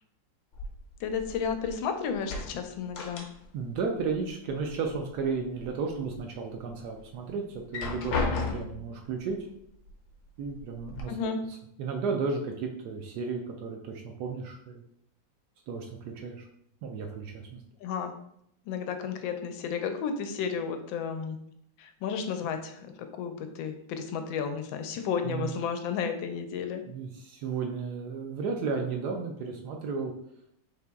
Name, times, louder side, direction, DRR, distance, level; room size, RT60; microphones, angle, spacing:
sound 1, 0.5-1.8 2.1-3.7 4.0-5.0 5.4-6.2 6.7-6.8 7.5-8.9 9.9-10.0 10.4-11.0, left 4 dB, 65° left, 1.3 m, -35 dB
voice 1, 1.0-3.3 11.1-11.4 17.8-18.1 18.7-21.4 21.8-22.9 23.1-26.8, left 6 dB, 85° left, 7 dB, 1.3 m, -32 dB
voice 2, 3.5-9.5 10.4-11.2 11.5-14.8 15.7-16.5 16.8-17.6 25.2-25.5 26.9-30.1, right 5 dB, 70° right, 2 dB, 1.0 m, -33 dB
4.1 x 2.9 x 3.4 m, 0.73 s
omnidirectional pair, 2.1 m